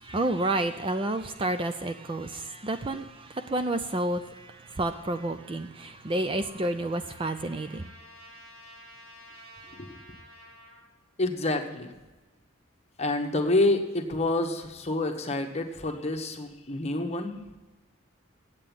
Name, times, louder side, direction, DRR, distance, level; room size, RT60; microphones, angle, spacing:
voice 1, 0.0-7.9, right 2 dB, 25° right, 0.4 m, -30 dB
Trumpet, 5.8-10.9, equal, 80° right, 3.5 m, -52 dB
voice 2, 11.2-11.9 13.0-17.4, left 2 dB, 30° left, 1.2 m, -28 dB
8.7 x 8.1 x 9.0 m
head